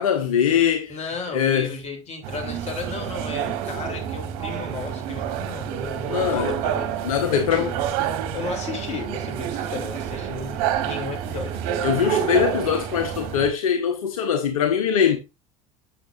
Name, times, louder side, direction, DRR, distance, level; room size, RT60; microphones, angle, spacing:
voice 1, 0.0-0.9 1.3-1.8 6.1-6.5 7.0-7.7 11.8-15.2, left 8 dB, 85° left, 0.9 m, -22 dB
voice 2, 0.9-7.8 8.3-11.6, left 4 dB, 40° left, 3.1 m, -34 dB
sound 1, 2.2-13.5, right 9 dB, 65° right, 1.2 m, -28 dB
7.7 x 6.5 x 2.5 m
hypercardioid pair, 75°, 18 cm